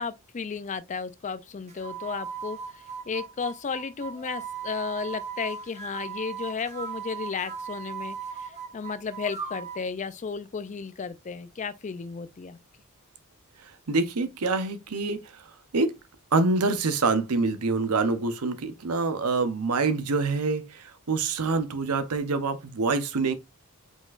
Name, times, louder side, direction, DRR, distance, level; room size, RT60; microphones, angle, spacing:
voice 1, 0.0-12.6, left 5 dB, 35° left, 0.4 m, -34 dB
sound 1, 1.7-9.9, right 7 dB, 30° right, 1.2 m, -38 dB
voice 2, 13.9-15.2 15.7-15.9 16.3-23.3, right 3 dB, 85° right, 0.8 m, -26 dB
5.0 x 4.0 x 2.5 m
head